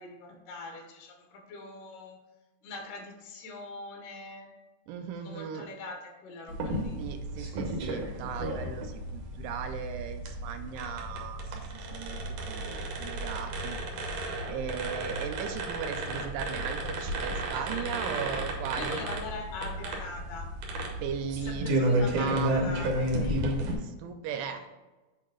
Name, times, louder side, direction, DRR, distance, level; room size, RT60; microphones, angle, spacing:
voice 1, 0.0-2.2 2.6-4.5 5.2-7.0 17.6-18.4 18.7-20.5 21.4-23.4 24.5-24.6, left 3 dB, 75° left, 2 dB, 2.7 m, -42 dB
voice 2, 4.9-5.7 7.0-11.4 11.9-12.2 12.5-19.0 21.0-21.7 22.0-22.5 23.8-24.7, right 7 dB, 85° right, 7 dB, 2.2 m, -37 dB
sound 1, 6.5-23.7, right 1 dB, 65° right, 1.8 m, -32 dB
8.2 x 2.8 x 4.9 m, 1.2 s
omnidirectional pair, 3.9 m